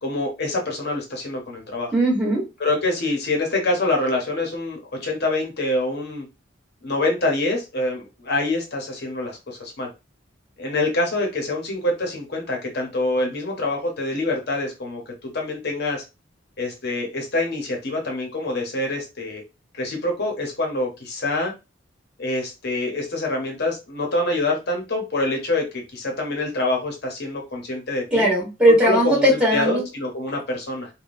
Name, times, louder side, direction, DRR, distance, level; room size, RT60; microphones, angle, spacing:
voice 1, 0.0-1.9 2.6-6.3 6.8-9.9 10.6-16.0 16.6-19.4 19.7-21.5 22.2-28.3 28.8-30.9, left 2 dB, 55° left, 1 dB, 0.8 m, -25 dB
voice 2, 1.9-2.4 28.1-29.8, right 1 dB, 5° right, -4 dB, 1.3 m, -18 dB
3.4 x 2.2 x 2.5 m, 0.26 s
head